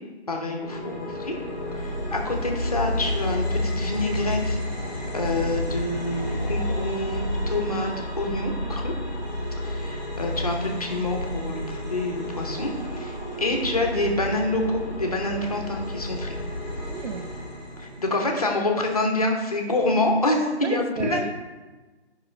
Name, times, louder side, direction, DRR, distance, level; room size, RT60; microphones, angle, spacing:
voice 1, 0.3-1.3 1.7-4.6 5.1-8.9 9.6-16.4 17.8-21.3, left 2 dB, 35° left, 0.8 m, -27 dB
sound 1, 0.6-18.0, left 1 dB, 15° left, 1.1 m, -30 dB
voice 2, 16.9-17.3 20.6-21.3, right 5 dB, 85° right, 0.5 m, -33 dB
8.9 x 5.4 x 3.3 m
figure-of-eight pair, 170°, 34 cm